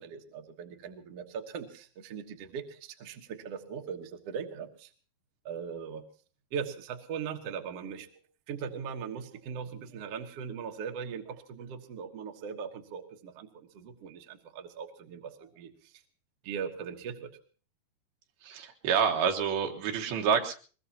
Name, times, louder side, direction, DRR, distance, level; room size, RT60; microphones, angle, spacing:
voice 1, 0.0-4.9 5.4-6.0 6.5-8.1 8.5-15.9 16.4-17.3, right 7 dB, 55° right, 4 dB, 1.8 m, -40 dB
voice 2, 18.4-20.5, right 7 dB, 80° right, 4 dB, 3.3 m, -28 dB
22.0 x 21.5 x 2.9 m, 0.40 s
omnidirectional pair, 4.4 m